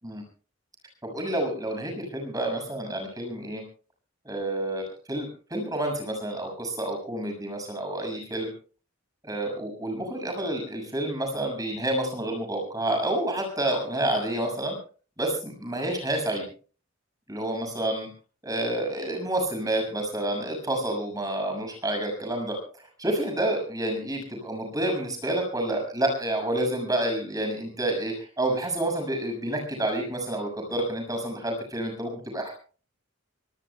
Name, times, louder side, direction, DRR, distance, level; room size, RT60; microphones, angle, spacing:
voice 1, 1.0-3.6 4.2-8.5 9.2-14.8 15.2-16.4 17.3-18.1 18.4-22.6 23.0-32.5, right 1 dB, 20° right, 3 dB, 6.6 m, -29 dB
25.5 x 19.5 x 2.3 m, 0.38 s
head